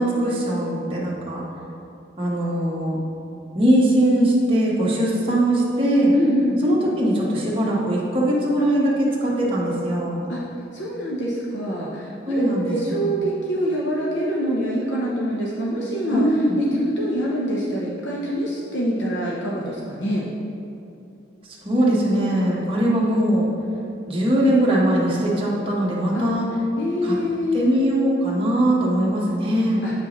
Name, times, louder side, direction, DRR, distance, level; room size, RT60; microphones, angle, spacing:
voice 1, 0.0-1.4 2.2-3.0 3.5-6.1 6.6-10.2 12.2-13.2 16.1-16.6 21.6-23.5 24.1-26.5 27.0-27.1 27.5-29.8, right 1 dB, 30° right, -5 dB, 1.2 m, -21 dB
voice 2, 6.1-6.6 10.3-10.4 10.7-16.2 16.6-20.2 26.1-26.3 26.8-27.6 29.8-29.9, equal, 70° left, -4 dB, 0.8 m, -25 dB
8.6 x 5.7 x 3.1 m, 2.7 s
head